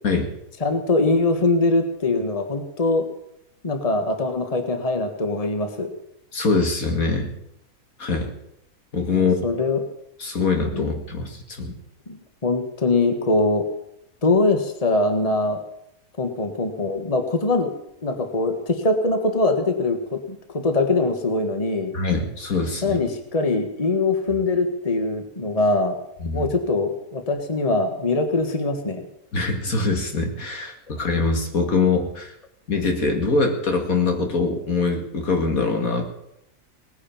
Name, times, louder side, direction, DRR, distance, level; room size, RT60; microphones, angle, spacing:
voice 1, 0.6-3.0 3.6-5.9 9.1-9.8 10.7-10.9 12.1-13.6 14.2-15.6 16.2-17.7 18.0-20.4 20.6-21.9 22.8-26.0 26.3-29.1, left 2 dB, 25° left, 7 dB, 1.6 m, -22 dB
voice 2, 6.3-7.3 8.0-8.3 8.9-9.5 10.2-11.7 21.9-23.0 26.2-26.5 29.3-32.3 32.7-36.1, left 4 dB, 75° left, 4 dB, 2.7 m, -23 dB
18.5 x 9.9 x 7.2 m, 0.77 s
omnidirectional pair, 1.5 m